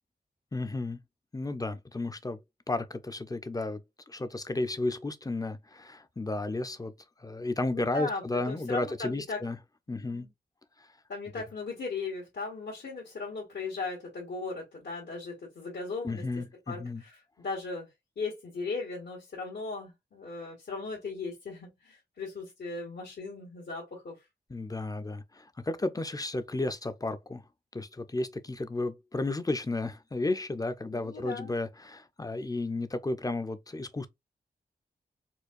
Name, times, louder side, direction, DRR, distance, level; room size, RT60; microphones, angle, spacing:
voice 1, 0.5-1.0 1.3-2.4 2.7-3.8 4.1-6.9 7.2-9.6 9.9-10.3 16.0-17.0 24.5-27.4 27.7-34.1, left 2 dB, 20° left, 0.6 m, -33 dB
voice 2, 7.7-9.4 9.9-10.3 11.1-16.3 16.7-17.9 18.2-24.1 30.9-31.6, left 3 dB, 80° left, 1.4 m, -37 dB
4.4 x 2.3 x 2.5 m
cardioid pair, 60°, 18 cm